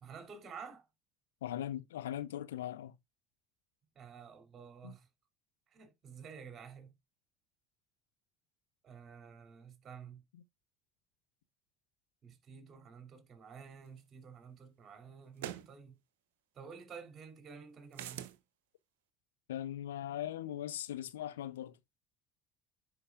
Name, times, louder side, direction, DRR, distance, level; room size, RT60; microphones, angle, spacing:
voice 1, 0.0-0.8 3.9-5.1 5.7-6.9 8.8-10.2 12.2-15.9 16.5-18.3, right 6 dB, 40° right, 2.7 m, -51 dB
voice 2, 1.4-3.0 4.8-4.9 10.3-10.4 19.5-21.8, left 11 dB, 85° left, 0.5 m, -40 dB
sound 1, 14.0-14.1 15.4-15.7 17.9-18.4, right 12 dB, 80° right, 0.9 m, -42 dB
10.5 x 4.8 x 2.3 m
hypercardioid pair, 70°, 0 cm